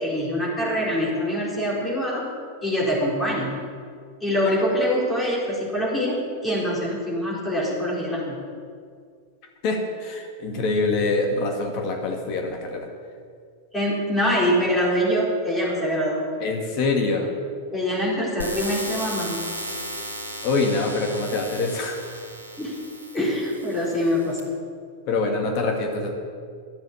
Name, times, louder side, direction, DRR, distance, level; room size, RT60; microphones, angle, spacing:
voice 1, 0.0-2.3 2.6-3.6 4.2-8.4 13.7-16.3 17.7-19.4 22.6-22.8 23.1-24.5, equal, 10° left, -5 dB, 4.4 m, -24 dB
voice 2, 9.6-12.9 16.4-17.3 20.4-22.0 25.1-26.1, left 3 dB, 40° left, 2 dB, 2.1 m, -25 dB
sound 1, 18.4-24.4, equal, 85° right, 1.5 m, -35 dB
12.5 x 7.7 x 8.5 m, 2.1 s
figure-of-eight pair, 90°, 0 cm